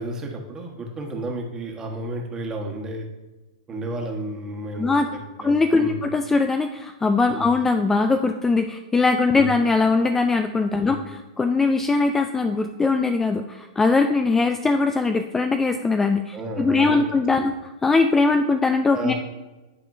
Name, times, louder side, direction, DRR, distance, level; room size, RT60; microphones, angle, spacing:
voice 1, 0.0-3.1 3.7-6.0 7.3-7.5 9.3-9.5 10.8-11.1 16.3-17.1 17.4-17.5 18.9-19.1, right 1 dB, 20° right, 1 dB, 1.3 m, -32 dB
voice 2, 5.4-17.5 17.8-19.1, left 3 dB, 10° left, 7 dB, 0.3 m, -21 dB
11.0 x 4.2 x 2.6 m, 1.1 s
hypercardioid pair, 115°, 3 cm